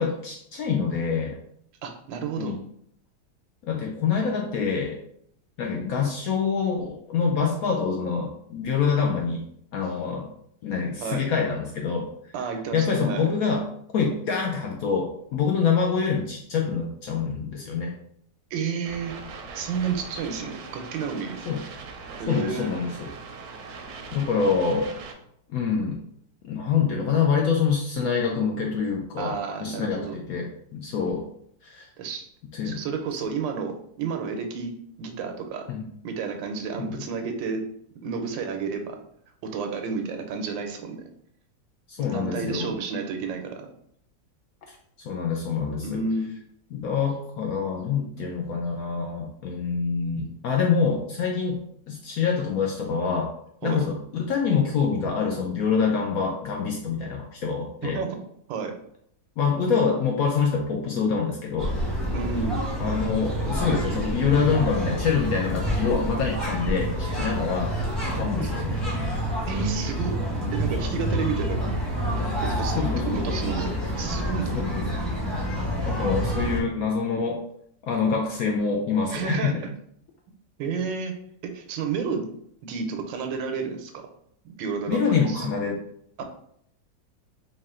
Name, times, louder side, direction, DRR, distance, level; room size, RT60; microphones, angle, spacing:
voice 1, 0.0-1.4 2.4-2.6 3.6-5.0 5.6-9.4 9.7-10.3 10.6-12.1 12.7-13.7 13.9-17.9 21.5-21.6 22.3-23.1 23.7-23.8 24.1-25.0 25.5-26.0 26.4-31.2 31.6-31.9 32.5-32.8 35.7-35.8 36.8-36.9 41.9-42.7 44.7-46.0 46.7-51.6 51.9-53.3 53.6-58.0 59.4-61.7 62.8-67.8 68.1-69.0 72.8-73.2 74.5-74.8 75.9-77.4 77.8-79.6 84.9-85.8, left 5 dB, 75° left, 1 dB, 0.8 m, -26 dB
voice 2, 1.8-2.5 11.0-11.2 12.3-13.3 18.5-19.1 19.5-21.4 22.2-22.7 29.2-30.2 32.0-32.3 32.6-35.7 36.0-37.6 38.0-39.0 39.5-41.0 42.1-43.5 45.8-46.3 53.6-53.8 57.8-58.2 58.5-58.8 62.1-62.7 68.4-68.5 69.5-70.2 70.5-71.6 72.4-74.6 79.1-79.7 80.6-81.2 81.4-82.3 82.6-84.1 84.4-85.5 86.2-86.3, right 5 dB, 90° right, 5 dB, 1.4 m, -31 dB
sound 1, 18.8-25.1, right 4 dB, 70° right, 1.0 m, -41 dB
sound 2, 61.6-76.6, equal, ahead, 0.6 m, -28 dB
4.1 x 2.4 x 3.6 m, 0.70 s
omnidirectional pair, 2.0 m